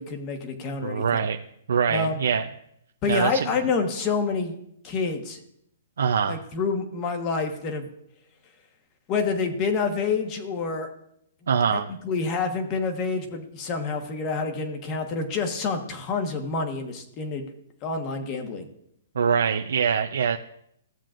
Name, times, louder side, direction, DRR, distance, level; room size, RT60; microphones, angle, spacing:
voice 1, 0.0-1.3 1.9-2.2 3.0-4.6 4.8-5.4 6.2-7.9 9.1-10.9 11.7-17.5 17.8-18.6, left 4 dB, 25° left, 5 dB, 1.2 m, -28 dB
voice 2, 0.8-1.4 1.7-2.5 3.1-3.5 6.0-6.4 11.5-11.9 19.2-20.4, right 7 dB, 75° right, 5 dB, 0.5 m, -23 dB
15.5 x 7.5 x 2.5 m, 0.75 s
hypercardioid pair, 155°, 0 cm